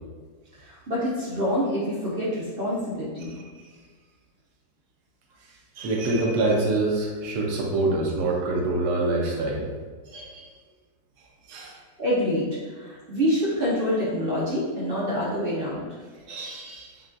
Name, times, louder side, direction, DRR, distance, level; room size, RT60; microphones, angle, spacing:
voice 1, 0.6-3.3 12.0-15.9, equal, 50° right, -7 dB, 0.6 m, -26 dB
voice 2, 5.8-9.6 10.1-10.5 11.5-11.8 16.3-16.9, right 2 dB, 75° right, -2 dB, 1.3 m, -25 dB
5.5 x 2.3 x 2.6 m, 1.5 s
omnidirectional pair, 1.8 m